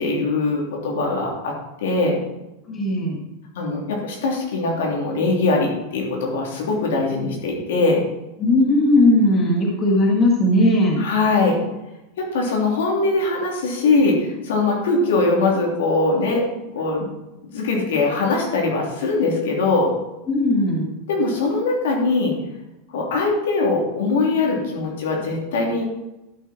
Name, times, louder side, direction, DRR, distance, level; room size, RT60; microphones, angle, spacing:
voice 1, 0.0-2.2 3.5-8.0 11.0-11.6 12.2-16.4 16.7-17.1 17.5-19.9 21.1-22.4 22.9-25.8, left 3 dB, 85° left, -1 dB, 2.9 m, -21 dB
voice 2, 2.7-3.2 8.4-11.0 20.3-20.9, left 1 dB, 25° left, -1 dB, 1.8 m, -17 dB
12.0 x 5.9 x 4.3 m, 0.95 s
supercardioid pair, 155°, 0 cm